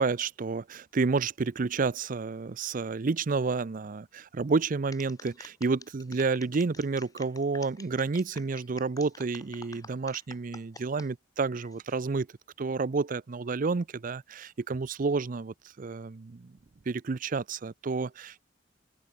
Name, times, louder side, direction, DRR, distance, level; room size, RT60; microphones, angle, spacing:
voice 1, 0.0-12.3 12.6-16.5 16.9-18.4, right 4 dB, 45° right, 0.5 m, -30 dB
sound 1, 4.9-11.1 11.6-12.0, left 4 dB, 20° left, 3.2 m, -48 dB
open air
head